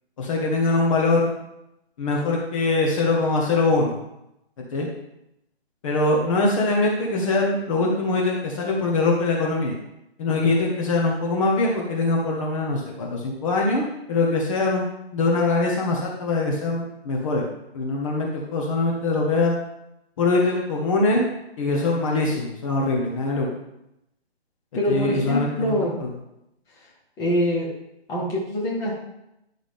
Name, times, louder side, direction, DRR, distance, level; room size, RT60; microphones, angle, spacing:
voice 1, 0.2-1.3 2.0-4.0 4.7-4.9 5.8-9.8 10.2-14.9 15.1-17.5 17.7-19.5 20.2-21.3 21.6-23.5 24.9-26.1, left 2 dB, 30° left, -1 dB, 1.4 m, -23 dB
voice 2, 24.7-26.0 27.2-27.7 28.1-28.9, left 1 dB, 10° left, -5 dB, 1.5 m, -24 dB
11.0 x 6.2 x 3.7 m, 0.85 s
hypercardioid pair, 155°, 32 cm